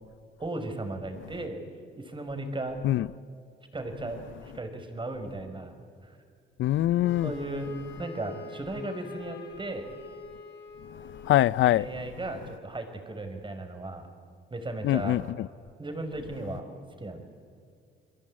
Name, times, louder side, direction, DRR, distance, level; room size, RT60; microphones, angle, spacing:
voice 1, 0.4-1.6 2.0-2.8 3.7-6.2 7.2-7.7 8.0-9.9 11.8-14.1 14.5-15.2 15.8-16.7 17.0-17.2, right 2 dB, 25° right, 5.1 m, -36 dB
voice 2, 6.6-7.3 11.2-11.9 14.8-15.5, left 14 dB, 75° left, 0.6 m, -23 dB
Wind instrument woodwind instrument, 7.0-11.4, left 5 dB, 60° left, 5.2 m, -45 dB
30.0 x 22.0 x 8.7 m
cardioid pair, 90°, 20 cm